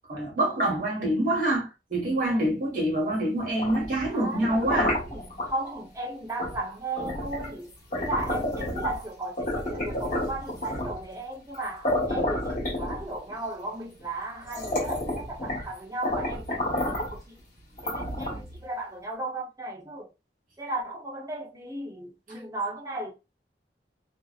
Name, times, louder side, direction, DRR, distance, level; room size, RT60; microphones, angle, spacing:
voice 1, 0.1-4.9, right 1 dB, 50° right, 1.1 m, -26 dB
sound 1, 3.4-5.5 6.4-6.6 7.0-9.0 9.4-11.0 11.5-11.6 11.8-13.3 14.0-14.1 14.4-15.7 16.0-17.2 17.8-18.6, left 1 dB, 45° left, 1.1 m, -30 dB
voice 2, 4.1-17.4 17.8-20.1 20.6-23.1, right 2 dB, 20° right, 0.8 m, -35 dB
2.6 x 2.1 x 2.3 m
head